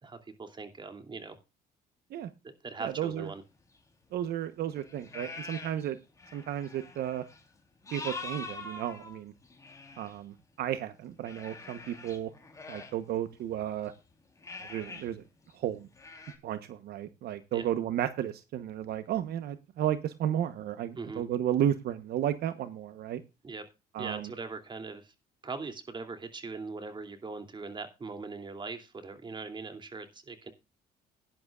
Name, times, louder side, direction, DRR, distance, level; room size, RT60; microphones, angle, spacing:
voice 1, 0.0-1.4 2.4-3.4 17.5-17.7 21.0-21.2 23.4-23.6 24.0-25.1 25.4-30.5, right 4 dB, 25° right, 7 dB, 2.9 m, -41 dB
voice 2, 2.8-3.3 4.1-6.0 6.3-7.2 7.9-9.3 10.0-12.3 12.7-13.9 14.7-15.2 15.5-15.9 16.4-23.2 23.9-24.3, right 11 dB, 70° right, 11 dB, 1.1 m, -33 dB
sound 1, 3.7-3.8 4.6-5.9 6.2-10.1 11.2-13.9 14.4-15.1 15.4-15.5 15.9-16.3, left 3 dB, 20° left, 3.5 m, -44 dB
17.0 x 10.5 x 2.4 m, 0.27 s
cardioid pair, 110°, 17 cm